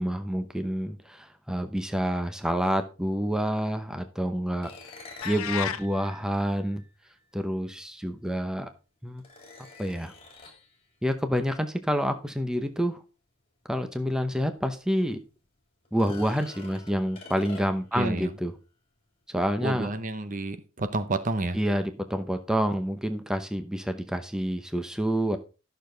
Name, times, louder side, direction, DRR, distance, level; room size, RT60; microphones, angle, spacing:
voice 1, 0.0-4.7 5.2-6.8 7.3-8.7 9.0-9.2 9.8-10.1 11.0-13.0 13.7-15.2 15.9-18.5 19.3-19.9 21.5-25.4, equal, 5° right, 8 dB, 0.8 m, -28 dB
sound 1, 4.6-7.1 8.3-8.4 9.2-10.7 14.0-14.1 14.5-14.6 15.8-18.0, left 2 dB, 25° left, 3.0 m, -47 dB
sound 2, 5.2-5.9, left 9 dB, 70° left, 0.6 m, -31 dB
voice 2, 17.9-18.3 19.6-21.6, right 2 dB, 35° right, 11 dB, 0.8 m, -30 dB
12.5 x 6.8 x 3.9 m, 0.32 s
head